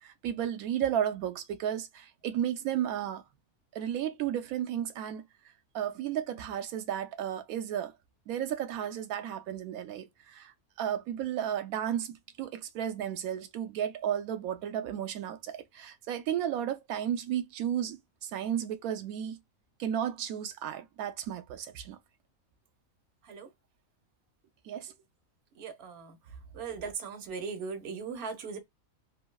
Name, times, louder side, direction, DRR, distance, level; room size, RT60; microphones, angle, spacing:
voice 1, 0.0-3.2 3.7-5.2 5.7-7.9 8.3-19.4 19.8-22.0 24.6-24.9, right 10 dB, 85° right, 1.1 m, -33 dB
voice 2, 25.6-26.2 26.5-28.6, right 5 dB, 55° right, 0.9 m, -38 dB
3.2 x 2.6 x 2.2 m
omnidirectional pair, 1.5 m